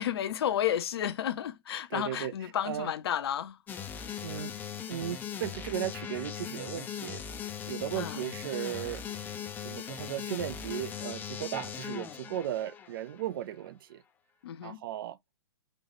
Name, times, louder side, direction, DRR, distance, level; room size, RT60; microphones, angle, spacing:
voice 1, 0.0-3.6 7.9-8.2 14.4-14.8, left 10 dB, 65° left, 0.6 m, -32 dB
voice 2, 1.9-2.3 2.6-2.9 4.2-7.2 7.6-9.0 9.6-14.0 14.6-15.2, right 12 dB, 55° right, 0.5 m, -36 dB
sound 1, 3.7-13.3, left 8 dB, 15° left, 0.4 m, -39 dB
3.9 x 2.4 x 3.4 m
hypercardioid pair, 135°, 14 cm